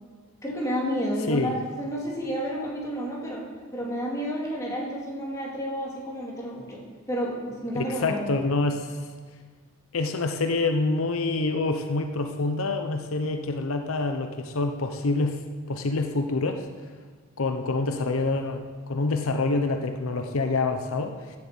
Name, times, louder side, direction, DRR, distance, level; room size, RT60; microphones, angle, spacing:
voice 1, 0.4-3.4 3.7-6.8 7.1-8.2, equal, 15° left, -4 dB, 2.4 m, -30 dB
voice 2, 7.7-9.0 9.9-15.4 15.7-16.7 17.4-21.2, left 3 dB, 80° left, 6 dB, 0.8 m, -26 dB
10.5 x 7.7 x 7.6 m, 1.5 s
head